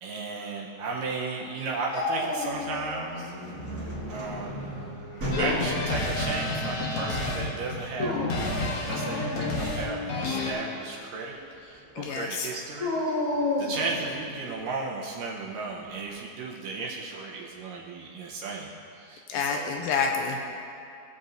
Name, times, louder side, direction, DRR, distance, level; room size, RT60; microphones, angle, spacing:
voice 1, 0.0-3.3 4.1-4.5 5.3-12.9 13.6-19.8, right 3 dB, 75° right, -3 dB, 2.1 m, -35 dB
Dog, 1.9-3.1 3.4-4.1 5.1-5.9 7.8-8.5 12.8-14.1, left 2 dB, 30° left, 1.7 m, -30 dB
sound 1, 2.3-12.1, right 1 dB, 50° right, 1.0 m, -39 dB
sound 2, 5.3-10.5, left 2 dB, 60° left, 1.9 m, -30 dB
voice 2, 12.0-12.5 19.3-20.4, left 5 dB, 80° left, 2 dB, 2.2 m, -28 dB
18.5 x 6.9 x 2.6 m, 2.6 s
omnidirectional pair, 4.4 m